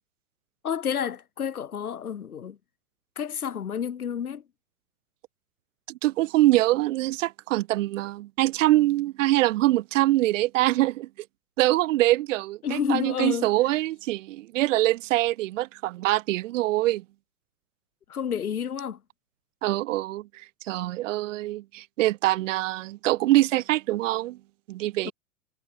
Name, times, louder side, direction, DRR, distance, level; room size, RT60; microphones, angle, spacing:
voice 1, 0.6-2.6 3.2-4.4 12.6-13.5 18.1-19.0 25.0-25.1, left 8 dB, 90° left, 2.3 m, -30 dB
voice 2, 5.9-11.1 11.6-17.0 19.6-20.3 20.6-24.4 24.7-25.1, right 17 dB, 60° right, 2.7 m, -24 dB
hypercardioid pair, 120°, 43 cm